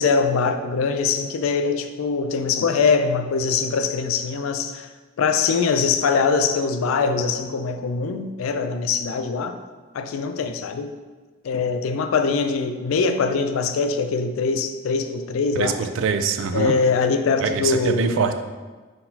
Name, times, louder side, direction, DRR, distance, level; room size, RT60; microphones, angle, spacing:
voice 1, 0.0-4.9 5.2-9.6 9.9-10.9 11.4-15.8 16.5-18.2, left 5 dB, 85° left, 8 dB, 0.3 m, -22 dB
voice 2, 15.6-16.7 17.4-18.3, right 6 dB, 70° right, 8 dB, 0.3 m, -23 dB
4.3 x 3.8 x 2.7 m, 1.3 s
head